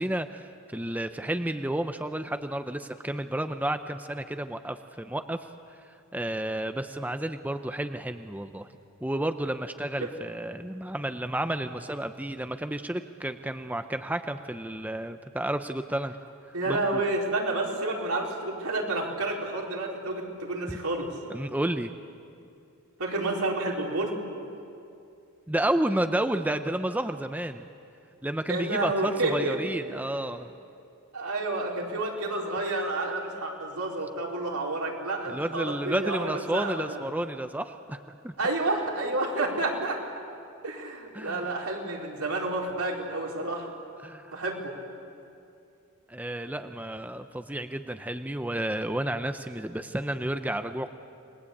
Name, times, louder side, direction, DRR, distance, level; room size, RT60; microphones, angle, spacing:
voice 1, 0.0-5.5 6.1-8.7 9.0-16.2 16.7-17.0 20.7-20.8 21.3-21.9 25.5-27.7 28.2-30.5 35.3-38.3 41.1-41.6 44.0-44.4 46.1-50.9, right 1 dB, 5° right, 8 dB, 0.6 m, -31 dB
voice 2, 16.5-21.1 23.0-24.2 28.5-29.6 29.9-30.0 31.1-37.0 38.4-40.0 40.6-43.7 44.3-44.7, right 2 dB, 85° right, -2 dB, 4.6 m, -30 dB
28.5 x 21.5 x 8.5 m, 2.6 s
head